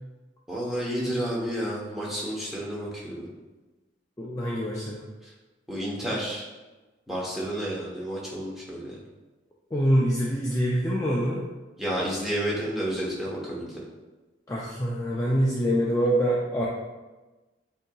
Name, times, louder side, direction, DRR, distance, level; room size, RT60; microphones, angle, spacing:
voice 1, 0.5-3.3 5.2-5.3 5.7-6.4 7.1-9.0 11.8-13.8, equal, ahead, -5 dB, 0.9 m, -31 dB
voice 2, 4.2-5.0 9.7-11.4 14.5-16.7, equal, 15° left, -5 dB, 0.4 m, -25 dB
7.8 x 2.8 x 2.3 m, 1.2 s
head